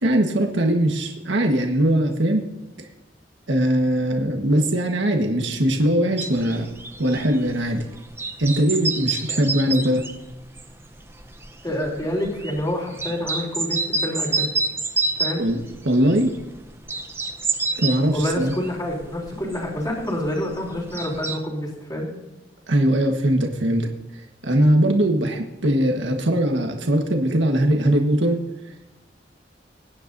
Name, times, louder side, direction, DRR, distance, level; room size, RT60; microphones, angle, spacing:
voice 1, 0.0-2.4 3.5-6.7 7.0-7.9 8.4-10.1 15.4-15.6 15.8-16.3 17.8-18.5 22.7-28.4, right 1 dB, 90° right, 3 dB, 1.4 m, -21 dB
sound 1, 6.2-21.4, right 3 dB, 15° right, 0.7 m, -29 dB
voice 2, 11.6-14.5 15.1-15.4 18.1-22.1, left 1 dB, 20° left, -2 dB, 3.4 m, -27 dB
21.5 x 10.0 x 2.7 m, 1.0 s
head